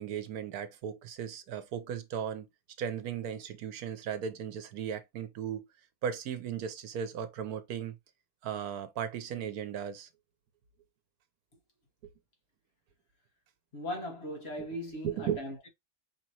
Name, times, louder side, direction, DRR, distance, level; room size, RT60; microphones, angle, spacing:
voice 1, 0.0-2.5 2.8-5.7 6.0-7.9 8.4-10.1 15.0-15.4, right 8 dB, 80° right, 1.2 m, -36 dB
voice 2, 13.7-15.7, equal, 45° left, 1.4 m, -38 dB
5.1 x 2.9 x 2.9 m
omnidirectional pair, 1.6 m